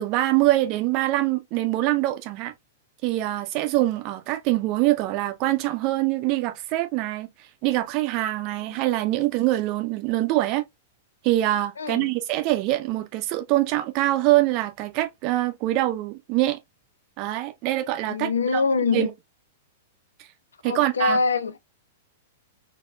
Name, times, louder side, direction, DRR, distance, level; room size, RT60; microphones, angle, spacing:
voice 1, 0.0-2.5 3.0-10.6 11.2-16.6 17.2-18.6 18.9-19.1 20.6-21.2, right 16 dB, 40° right, 0.6 m, -24 dB
voice 2, 11.8-12.1 18.1-19.1 20.6-21.6, left 4 dB, 75° left, 0.5 m, -24 dB
4.2 x 2.8 x 2.3 m
figure-of-eight pair, 100°, 0 cm